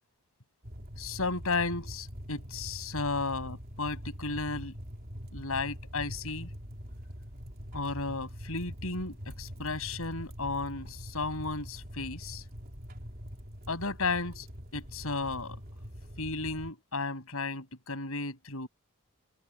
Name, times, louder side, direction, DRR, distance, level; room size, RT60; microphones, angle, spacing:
sound 1, 0.6-16.7, equal, 45° right, 3.5 m, -44 dB
voice 1, 1.0-4.7 5.3-6.5 7.7-12.4 13.7-14.5 14.7-15.6 16.2-18.7, left 3 dB, 70° left, 6.3 m, -34 dB
head